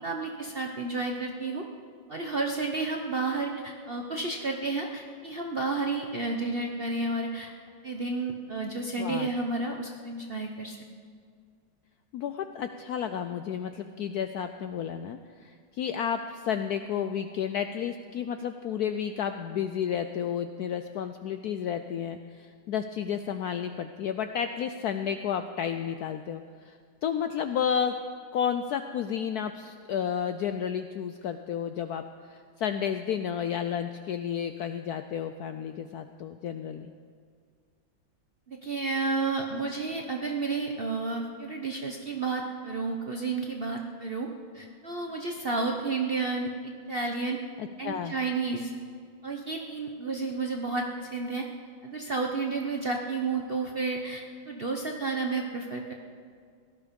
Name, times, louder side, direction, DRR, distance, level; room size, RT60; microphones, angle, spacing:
voice 1, 0.0-1.7 2.1-7.5 7.8-10.8 38.5-44.3 44.5-47.4 47.8-48.7 49.2-51.5 51.8-55.9, right 3 dB, 50° right, 2 dB, 0.7 m, -31 dB
voice 2, 9.0-9.3 12.1-27.9 28.3-32.0 32.3-36.9 47.6-48.1, left 8 dB, 75° left, 8 dB, 0.9 m, -32 dB
17.0 x 12.5 x 5.2 m, 2.1 s
omnidirectional pair, 2.1 m